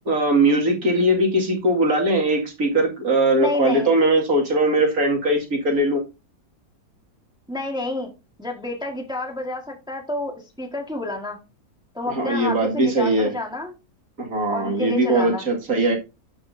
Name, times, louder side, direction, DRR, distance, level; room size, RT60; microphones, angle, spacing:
voice 1, 0.1-6.0 12.0-13.3 14.2-16.0, right 1 dB, 65° right, 0 dB, 2.6 m, -20 dB
voice 2, 3.3-3.9 7.5-8.1 8.4-11.4 11.9-13.7 14.5-15.4, left 2 dB, 5° right, 2 dB, 1.5 m, -29 dB
13.0 x 6.0 x 2.7 m, 0.27 s
omnidirectional pair, 1.7 m